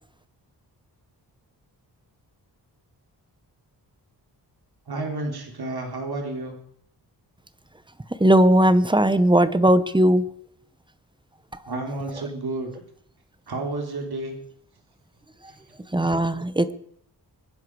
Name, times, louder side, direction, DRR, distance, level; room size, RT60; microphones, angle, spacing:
voice 1, 4.9-6.6 11.7-12.7 13.5-14.3 15.5-15.6, right 2 dB, 60° right, 2 dB, 3.7 m, -31 dB
voice 2, 8.2-10.2 15.9-16.7, right 1 dB, 10° right, 14 dB, 0.9 m, -18 dB
24.0 x 10.5 x 4.8 m, 0.66 s
wide cardioid pair, 115°, 42 cm